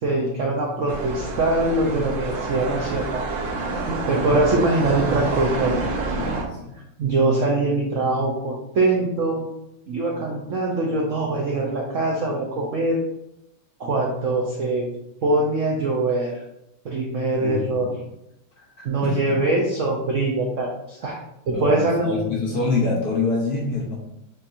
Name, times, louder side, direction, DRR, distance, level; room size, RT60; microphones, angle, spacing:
voice 1, 0.0-3.2 3.9-5.8 7.0-9.4 9.9-13.0 13.8-14.9 15.2-16.3 16.8-17.9 18.8-21.2 21.5-22.2, right 2 dB, 80° right, -2 dB, 0.7 m, -23 dB
sound 1, 0.9-6.4, right 3 dB, 55° right, 0.9 m, -28 dB
voice 2, 6.1-6.7 17.4-18.0 18.6-19.4 21.5-24.0, left 3 dB, 60° left, -2 dB, 1.2 m, -26 dB
6.7 x 2.8 x 2.5 m, 0.84 s
omnidirectional pair, 2.2 m